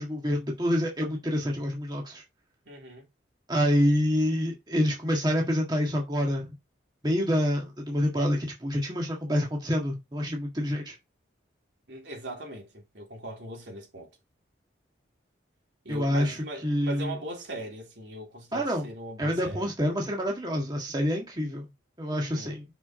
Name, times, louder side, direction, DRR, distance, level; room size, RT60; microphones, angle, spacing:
voice 1, 0.0-2.2 3.5-6.6 7.0-10.9 15.9-16.4 16.6-17.1 18.5-18.9 19.2-21.7 22.0-22.6, equal, 20° right, 1.6 m, -27 dB
voice 2, 2.6-3.0 11.9-14.1 15.8-19.7 22.1-22.6, right 1 dB, 75° right, 3.2 m, -40 dB
6.0 x 5.9 x 3.8 m
head